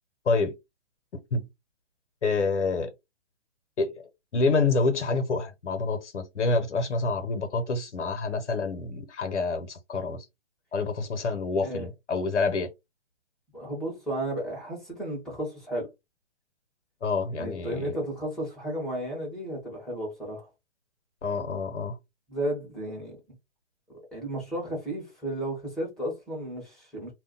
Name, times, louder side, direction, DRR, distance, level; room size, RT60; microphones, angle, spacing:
voice 1, 2.2-2.9 3.8-3.9 4.3-10.2 10.7-12.7 17.0-18.0 21.2-22.0, left 3 dB, 90° left, 1.0 m, -27 dB
voice 2, 13.5-15.9 17.4-20.5 22.3-23.2 23.9-27.1, right 1 dB, ahead, 1.1 m, -33 dB
2.4 x 2.3 x 3.9 m
hypercardioid pair, 150°, 34 cm